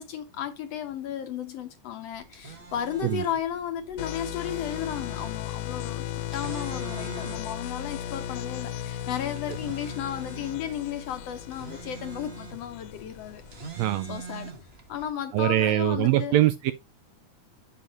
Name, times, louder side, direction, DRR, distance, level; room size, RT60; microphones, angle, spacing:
voice 1, 0.0-6.0 6.3-14.5 14.9-16.4, left 9 dB, 70° left, 1.6 m, -34 dB
sound 1, 2.1-15.1, right 3 dB, 65° right, 0.6 m, -44 dB
sound 2, 4.0-13.7, left 11 dB, 90° left, 1.4 m, -36 dB
voice 2, 13.8-14.2 15.3-16.7, right 15 dB, 80° right, 1.6 m, -23 dB
8.0 x 6.9 x 2.9 m
omnidirectional pair, 3.5 m